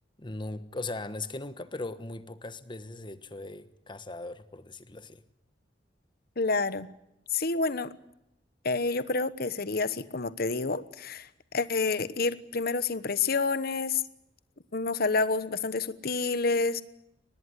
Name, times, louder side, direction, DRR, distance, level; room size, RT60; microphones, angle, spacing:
voice 1, 0.2-5.2, left 2 dB, 25° left, 12 dB, 1.3 m, -39 dB
voice 2, 6.4-6.9 7.3-7.9 8.6-14.0 14.7-16.8, left 4 dB, 55° left, 14 dB, 1.1 m, -28 dB
23.5 x 19.5 x 9.7 m, 0.83 s
head